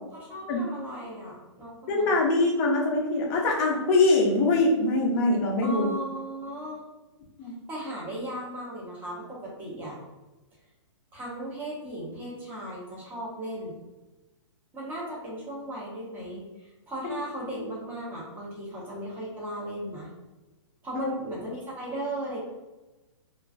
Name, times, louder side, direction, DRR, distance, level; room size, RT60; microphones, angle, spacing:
voice 1, 0.1-2.2 5.6-6.8 7.7-10.0 11.1-13.8 14.7-20.1 20.8-22.4, right 1 dB, 10° right, -5 dB, 0.7 m, -36 dB
voice 2, 1.9-5.9 7.4-7.5 17.0-17.1 20.9-21.1, left 2 dB, 35° left, -1 dB, 0.5 m, -23 dB
2.4 x 2.2 x 2.4 m, 1.1 s
hypercardioid pair, 150°, 16 cm